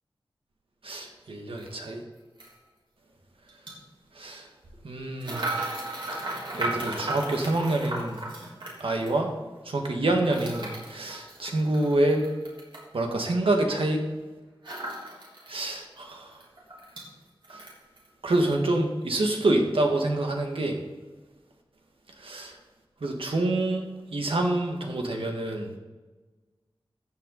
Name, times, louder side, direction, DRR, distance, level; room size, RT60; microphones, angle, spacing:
voice 1, 0.8-2.0 4.2-4.5 4.8-5.5 6.6-8.2 8.8-9.3 9.7-12.2 12.9-14.0 15.5-16.4 17.5-17.6 18.2-20.8 22.2-22.6 23.0-23.8 24.1-25.7, right 2 dB, 85° right, 2 dB, 1.9 m, -27 dB
sound 1, 1.6-1.7 2.4-2.5 3.5-3.7 5.2-9.2 10.3-12.9 14.6-15.6 16.0-16.1 16.4-17.1 17.4-18.1 18.4-18.6, right 2 dB, 65° right, 3.5 m, -35 dB
14.0 x 7.9 x 4.1 m, 1.3 s
wide cardioid pair, 70°, 9 cm